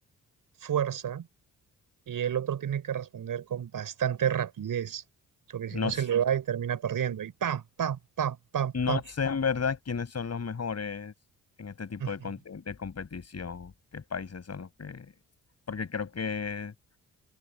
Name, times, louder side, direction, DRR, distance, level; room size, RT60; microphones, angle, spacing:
voice 1, 0.6-1.3 2.1-5.0 5.5-9.0 12.0-12.1, right 9 dB, 70° right, 5.1 m, -30 dB
voice 2, 5.7-6.0 8.7-11.1 11.6-15.1 15.7-16.7, left 5 dB, 50° left, 7.1 m, -33 dB
supercardioid pair, 60°, 34 cm